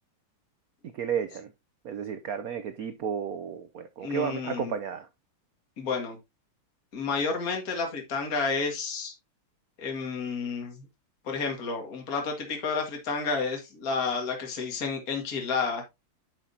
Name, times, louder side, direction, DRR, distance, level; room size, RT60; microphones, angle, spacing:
voice 1, 0.8-1.5 1.8-5.1, right 7 dB, 80° right, 0.8 m, -32 dB
voice 2, 4.0-4.7 5.8-6.2 6.9-9.1 9.8-10.8 11.2-15.8, left 4 dB, 40° left, 2.3 m, -30 dB
8.9 x 6.4 x 2.8 m
omnidirectional pair, 2.4 m